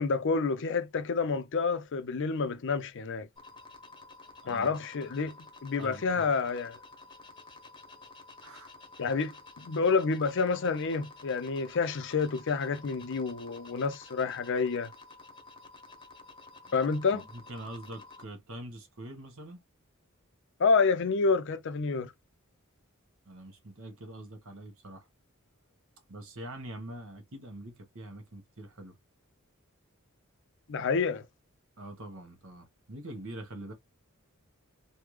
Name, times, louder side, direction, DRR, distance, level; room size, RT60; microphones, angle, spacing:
voice 1, 0.0-3.3 4.5-6.8 9.0-14.9 16.7-17.2 20.6-22.1 30.7-31.2, left 4 dB, 60° left, 0.5 m, -29 dB
sound 1, 3.4-18.2, left 3 dB, 20° left, 0.9 m, -51 dB
voice 2, 4.4-4.8 5.8-6.3 8.4-8.7 16.6-16.8 17.1-19.6 23.2-25.1 26.1-29.0 31.8-33.7, right 1 dB, 70° right, 1.3 m, -44 dB
3.5 x 2.2 x 3.2 m
head